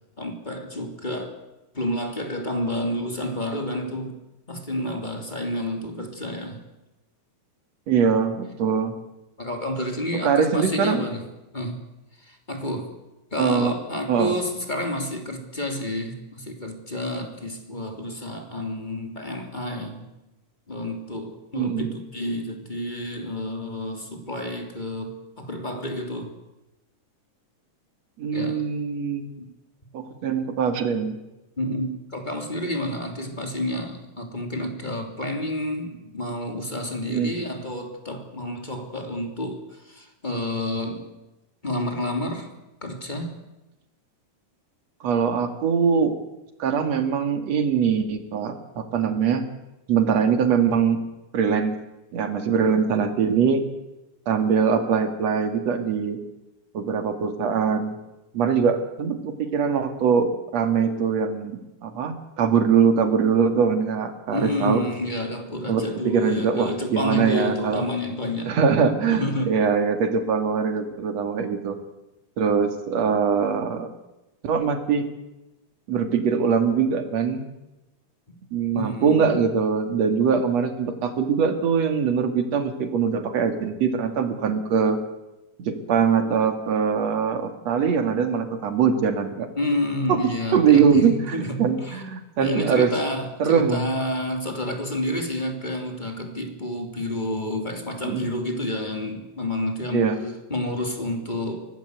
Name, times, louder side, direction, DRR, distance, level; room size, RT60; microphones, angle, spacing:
voice 1, 0.2-1.4 1.7-4.2 4.5-6.6 9.4-11.2 11.5-11.8 12.2-12.9 13.3-20.1 20.7-26.3 28.3-28.6 29.4-29.5 31.6-41.1 41.6-42.5 42.8-43.4 64.3-68.5 69.1-69.5 78.7-79.4 89.6-92.0 92.4-101.7, left 1 dB, 15° left, 4 dB, 2.9 m, -29 dB
voice 2, 7.9-8.9 10.2-11.0 13.4-13.8 14.1-14.3 21.5-21.9 28.2-29.3 29.9-31.2 37.1-37.3 45.0-46.2 46.6-49.5 49.9-51.0 51.3-51.8 52.1-53.6 54.3-56.2 56.7-58.0 58.3-64.8 65.7-67.8 68.5-71.8 72.4-73.9 74.4-75.1 75.9-77.4 78.5-85.0 85.6-89.5 90.1-92.9 93.4-93.9 98.0-98.3 99.9-100.2, right 6 dB, 55° right, 7 dB, 3.3 m, -22 dB
24.5 x 18.5 x 8.2 m, 0.99 s
omnidirectional pair, 3.8 m